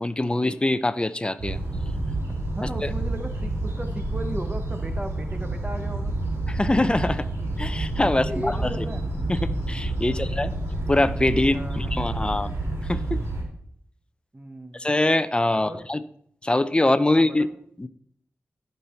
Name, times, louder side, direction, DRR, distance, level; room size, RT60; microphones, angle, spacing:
voice 1, 0.0-1.6 2.6-2.9 6.5-7.2 7.6-8.8 9.3-10.5 10.9-12.5 12.9-13.2 14.7-16.0 16.4-17.5 17.8-17.9, left 2 dB, 20° left, 13 dB, 0.5 m, -23 dB
sound 1, 1.4-13.4, right 2 dB, 75° right, 3.6 m, -29 dB
voice 2, 2.5-6.2 8.1-9.0 10.0-10.4 11.4-11.9 14.3-14.8 15.5-15.8 17.1-17.5, right 1 dB, 30° right, 5 dB, 1.0 m, -36 dB
15.0 x 5.5 x 4.4 m, 0.68 s
wide cardioid pair, 75°, 5 cm